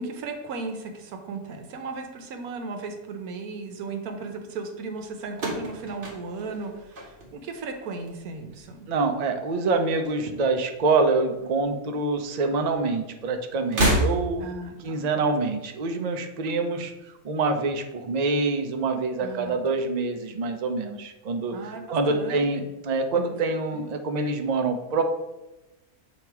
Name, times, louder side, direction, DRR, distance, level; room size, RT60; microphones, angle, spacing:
voice 1, 0.0-8.9 14.4-14.9 19.2-19.6 21.5-22.7 23.1-23.2 23.7-23.9, right 3 dB, 80° right, 5 dB, 1.2 m, -36 dB
sound 1, 5.3-7.7 8.0-8.6 9.6-10.6 10.9-11.0 12.1-12.2 13.6-14.6, right 1 dB, 40° right, 1.2 m, -28 dB
voice 2, 8.9-14.5 14.8-25.0, right 3 dB, 65° right, 5 dB, 0.4 m, -26 dB
7.2 x 2.9 x 4.6 m, 1.0 s
omnidirectional pair, 1.5 m